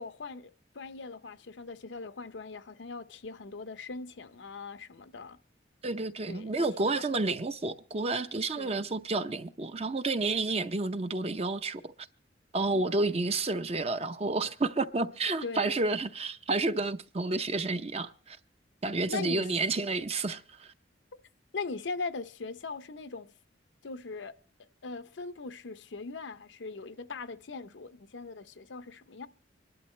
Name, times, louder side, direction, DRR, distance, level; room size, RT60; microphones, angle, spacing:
voice 1, 0.0-5.4 6.3-7.2 8.6-8.9 15.4-15.8 19.1-19.5 21.5-23.3 23.8-24.4 24.8-29.3, left 4 dB, 80° left, 0.7 m, -40 dB
voice 2, 5.8-11.8 12.5-18.4 18.8-20.7, right 3 dB, 35° right, 0.6 m, -30 dB
25.5 x 12.0 x 3.1 m
head